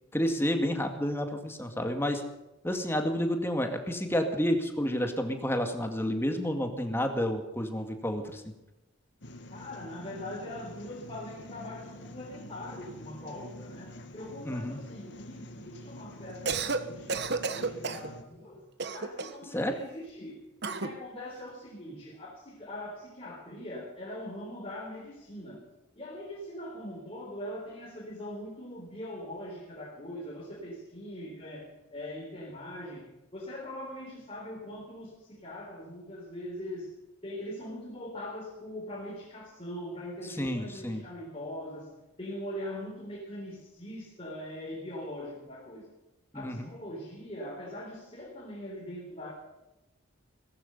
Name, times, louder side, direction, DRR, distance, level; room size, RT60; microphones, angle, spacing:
voice 1, 0.1-2.2 2.6-8.4 14.5-14.8 19.5-19.7 40.4-41.0 46.3-46.7, equal, 10° left, 5 dB, 2.1 m, -30 dB
sound 1, 9.2-18.2, left 1 dB, 60° left, 1.9 m, -47 dB
voice 2, 9.5-18.7 18.9-25.6 26.0-41.9 42.2-45.9 46.3-49.3, left 1 dB, 30° left, -3 dB, 3.9 m, -42 dB
Cough, 16.3-16.8 17.1-18.1 18.8-19.5 20.6-21.0, right 4 dB, 55° right, 1.2 m, -32 dB
17.5 x 15.5 x 5.5 m, 0.98 s
head